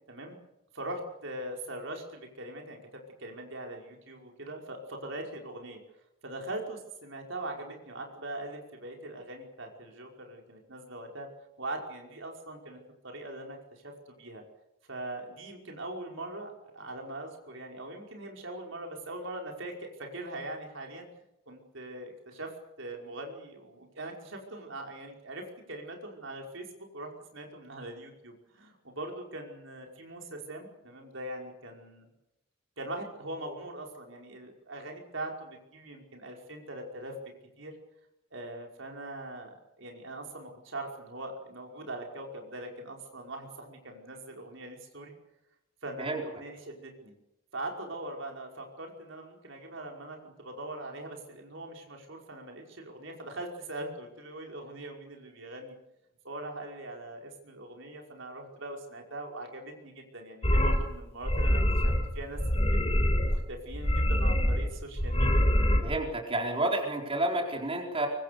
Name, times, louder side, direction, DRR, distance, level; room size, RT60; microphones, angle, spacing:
voice 1, 0.7-5.8 6.2-11.3 11.6-14.4 14.9-21.1 21.5-22.5 22.8-32.1 32.8-37.7 38.3-45.1 45.8-47.1 47.5-55.7 56.2-62.8 63.2-65.5, right 1 dB, 65° right, 2 dB, 5.3 m, -41 dB
sound 1, 60.4-60.8 61.2-62.1 62.3-63.4 63.7-64.7 65.0-65.8, equal, 30° left, 4.3 m, -25 dB
voice 2, 65.8-68.1, right 2 dB, 30° right, 1 dB, 4.4 m, -30 dB
24.5 x 24.0 x 6.9 m, 0.88 s
head